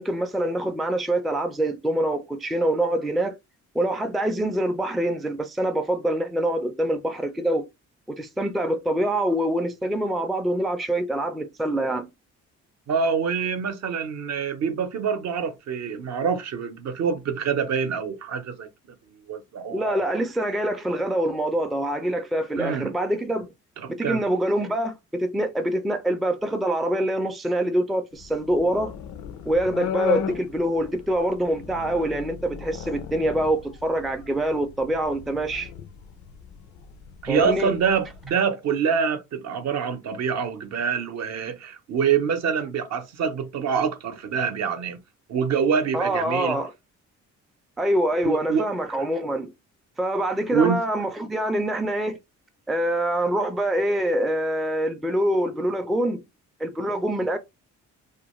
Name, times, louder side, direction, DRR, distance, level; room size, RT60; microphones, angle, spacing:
voice 1, 0.0-3.3 3.7-7.7 8.1-12.1 19.7-23.5 23.9-28.9 29.5-35.7 37.3-37.7 45.9-46.7 47.8-49.5 50.0-52.2 52.7-56.2 56.6-57.4, right 1 dB, ahead, 0.3 m, -25 dB
voice 2, 12.9-18.7 19.1-20.0 22.6-22.9 23.8-24.3 37.2-45.0 45.3-46.6 48.2-48.7 50.5-50.8, right 6 dB, 60° right, 0.6 m, -25 dB
sound 1, 28.2-38.3, left 8 dB, 70° left, 0.5 m, -36 dB
2.4 x 2.2 x 3.0 m
cardioid pair, 90°, 30 cm